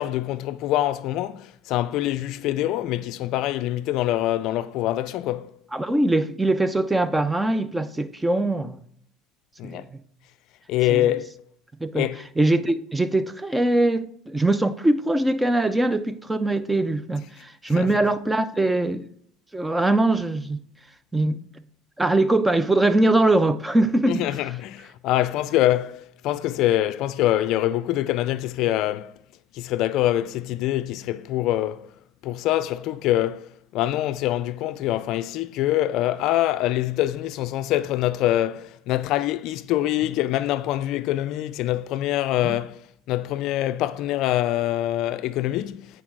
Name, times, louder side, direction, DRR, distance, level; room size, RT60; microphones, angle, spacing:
voice 1, 0.0-5.5 9.6-9.8 10.7-11.3 11.9-12.2 17.7-17.9 24.1-29.1 29.5-31.9 32.2-42.8 43.1-45.9, left 14 dB, 65° left, 0.3 m, -24 dB
voice 2, 5.7-8.8 9.6-9.9 10.9-11.1 11.8-12.1 12.4-19.1 19.5-20.6 21.1-21.4 22.0-24.2 42.4-42.5, right 2 dB, 10° right, 0.5 m, -22 dB
8.6 x 4.6 x 3.7 m
supercardioid pair, 85°, 0 cm